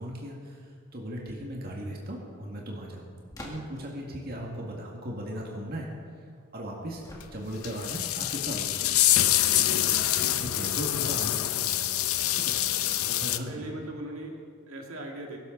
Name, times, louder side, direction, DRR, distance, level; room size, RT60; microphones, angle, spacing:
voice 1, 0.0-3.1 3.4-5.9 6.5-7.0 7.3-8.8 9.5-11.9 12.3-12.6 13.0-13.7, equal, 45° right, -2 dB, 2.0 m, -37 dB
sound 1, 3.3-4.0 7.0-7.8, left 1 dB, 15° left, 1.8 m, -45 dB
sound 2, 7.2-7.3 7.6-13.4, left 13 dB, 80° left, 0.6 m, -26 dB
voice 2, 13.5-15.4, right 1 dB, 70° right, 0 dB, 2.2 m, -39 dB
21.5 x 12.0 x 4.0 m, 2.1 s
head